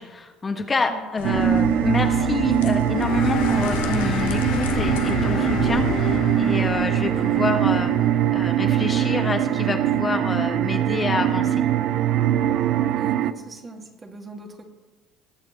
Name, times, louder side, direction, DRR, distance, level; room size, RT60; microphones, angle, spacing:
voice 1, 0.0-7.9 8.3-11.6, left 3 dB, 30° left, 5 dB, 1.3 m, -27 dB
sound 1, 1.2-6.2, left 3 dB, 85° left, 0.8 m, -31 dB
sound 2, 1.2-13.3, right 11 dB, 60° right, 0.5 m, -22 dB
sound 3, 2.9-10.0, left 6 dB, 60° left, 1.5 m, -31 dB
voice 2, 12.9-14.7, right 2 dB, 30° right, 4 dB, 1.9 m, -41 dB
20.0 x 6.8 x 4.0 m, 1.3 s
hypercardioid pair, 65°, 0 cm